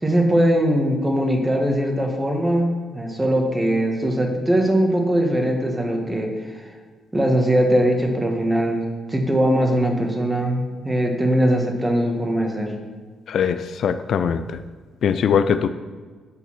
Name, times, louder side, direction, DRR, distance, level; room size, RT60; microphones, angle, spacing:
voice 1, 0.0-2.7 2.9-6.7 7.1-12.7, right 1 dB, 15° right, 2 dB, 1.4 m, -21 dB
voice 2, 13.3-14.4 15.0-15.7, left 7 dB, 65° left, 10 dB, 0.4 m, -21 dB
8.5 x 4.0 x 6.2 m, 1.5 s
cardioid pair, 90°, 0 cm